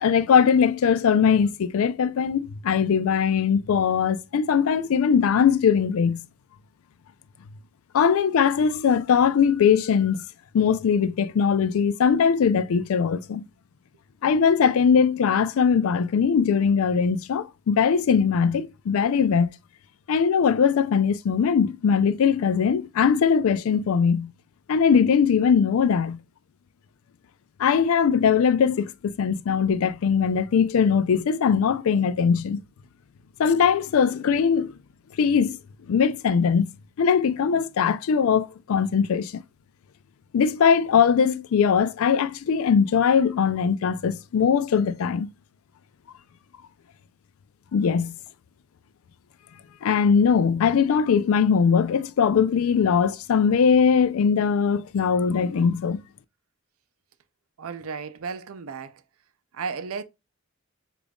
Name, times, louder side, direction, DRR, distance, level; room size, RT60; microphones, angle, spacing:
voice 1, 0.0-6.3 7.9-10.2 10.5-13.4 14.2-19.5 20.1-24.3 24.7-26.2 27.6-32.6 33.4-34.7 35.2-35.6 35.9-36.7 37.0-39.3 40.3-45.3 47.7-48.2 49.8-56.0, left 6 dB, 80° left, 0.3 m, -21 dB
voice 2, 57.6-59.0 59.5-60.0, right 5 dB, 80° right, 0.5 m, -34 dB
5.1 x 2.5 x 2.2 m
head